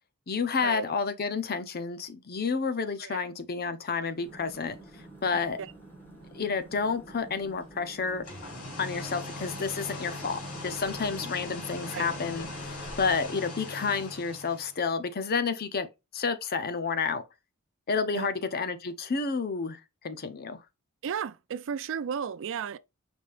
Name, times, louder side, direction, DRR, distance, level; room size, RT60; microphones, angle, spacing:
voice 1, 0.3-5.6 6.3-8.2 8.8-15.9 16.1-17.2 17.9-19.8 20.0-20.6, left 5 dB, 45° left, 0.7 m, -30 dB
sound 1, 4.1-13.3, right 2 dB, 10° left, 1.7 m, -49 dB
sound 2, 8.1-14.8, left 2 dB, 80° left, 3.1 m, -40 dB
voice 2, 21.0-22.8, right 7 dB, 60° right, 0.4 m, -34 dB
5.2 x 3.4 x 2.5 m
head